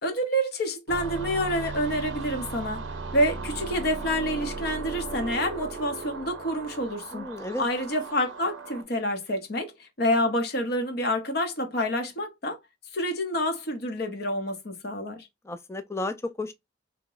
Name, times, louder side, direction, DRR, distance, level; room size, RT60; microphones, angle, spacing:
voice 1, 0.0-2.8 3.1-7.3 7.6-12.6 12.9-15.3, equal, 55° left, 0.7 m, -28 dB
sound 1, 0.9-8.8, right 4 dB, 75° right, 0.6 m, -36 dB
voice 2, 7.1-7.7 15.4-16.5, left 2 dB, 15° left, 0.3 m, -33 dB
2.9 x 2.1 x 3.8 m
head